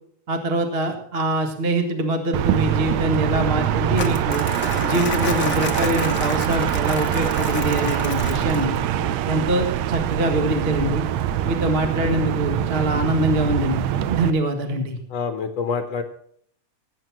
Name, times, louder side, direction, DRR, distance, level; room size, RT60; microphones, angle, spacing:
voice 1, 0.3-4.5 4.8-8.8 9.3-11.1 11.4-15.0, right 1 dB, 25° right, 4 dB, 1.4 m, -24 dB
sound 1, 2.3-14.3, right 11 dB, 75° right, 1.9 m, -24 dB
Crumpling crinkling, 3.9-8.8, left 5 dB, 40° left, 1.3 m, -31 dB
voice 2, 15.1-16.0, left 5 dB, 65° left, 6 dB, 2.0 m, -27 dB
18.5 x 8.7 x 6.1 m, 0.63 s
omnidirectional pair, 3.3 m